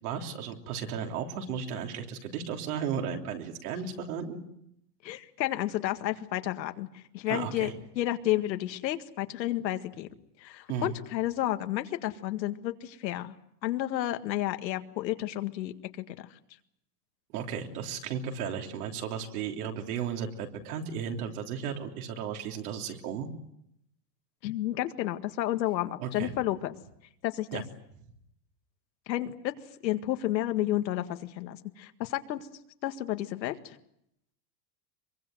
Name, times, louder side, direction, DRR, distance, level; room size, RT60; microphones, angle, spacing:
voice 1, 0.0-4.4 7.3-7.7 10.7-10.9 17.3-23.3 26.0-26.3 27.5-27.6, right 7 dB, 60° right, 3 dB, 3.4 m, -34 dB
voice 2, 5.0-10.1 10.4-13.4 13.6-16.4 24.4-26.8 27.2-27.6 29.1-29.5 29.8-32.5 32.8-33.8, left 14 dB, 90° left, 8 dB, 2.0 m, -31 dB
24.0 x 23.0 x 7.9 m, 0.75 s
supercardioid pair, 170°, 50 cm